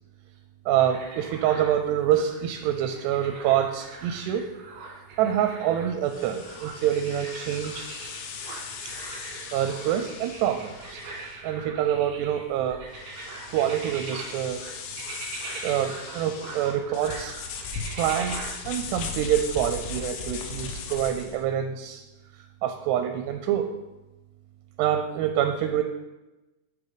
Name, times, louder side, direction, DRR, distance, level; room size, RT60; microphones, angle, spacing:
voice 1, 0.7-4.4 5.2-7.9 8.8-8.9 9.5-11.0 11.4-12.8 13.5-14.6 15.6-17.4 18.0-22.0 22.6-23.7 24.8-25.8, right 10 dB, 85° right, 6 dB, 2.6 m, -26 dB
sound 1, 0.8-18.5, right 3 dB, 60° right, 2.5 m, -42 dB
sound 2, 6.1-21.4, left 5 dB, 80° left, 2.9 m, -38 dB
7.1 x 6.6 x 5.0 m, 1.0 s
omnidirectional pair, 5.0 m